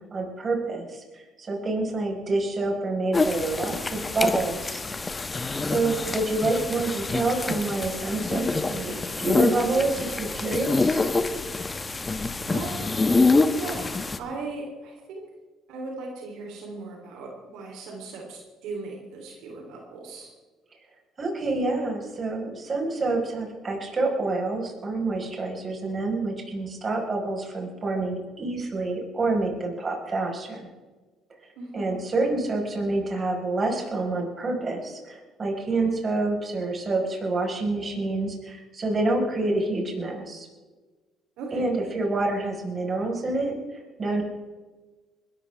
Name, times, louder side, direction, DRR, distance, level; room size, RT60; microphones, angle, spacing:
voice 1, 0.1-5.1 5.6-11.1 21.2-30.7 31.7-40.5 41.5-44.2, right 2 dB, 35° right, 0 dB, 5.2 m, -27 dB
sound 1, 3.1-14.2, left 3 dB, 25° left, 1.2 m, -26 dB
voice 2, 5.8-6.1 12.5-12.9 13.4-15.2 15.7-20.3 31.6-31.9 41.4-41.7, right 3 dB, 80° right, 0 dB, 3.5 m, -37 dB
21.0 x 13.5 x 3.6 m, 1.3 s
supercardioid pair, 85°, 0 cm